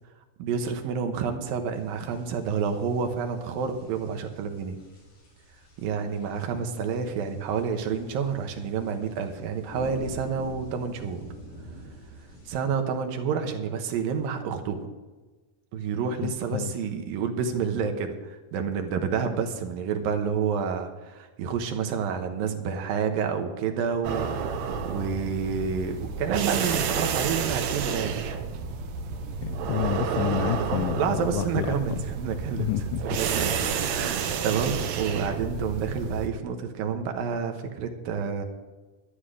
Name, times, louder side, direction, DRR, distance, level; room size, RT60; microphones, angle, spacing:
voice 1, 0.4-4.8 5.8-11.2 12.5-14.8 15.7-28.2 30.6-32.7 33.0-38.4, right 6 dB, 85° right, 5 dB, 2.9 m, -29 dB
sound 1, 1.7-12.5, right 1 dB, 60° left, 5.7 m, -47 dB
voice 2, 16.2-16.7 29.3-32.0 32.6-33.2, left 13 dB, 80° left, 11 dB, 1.9 m, -30 dB
sound 2, 24.0-36.3, right 6 dB, 65° right, 1.9 m, -30 dB
12.0 x 11.5 x 5.0 m, 1.3 s
omnidirectional pair, 4.0 m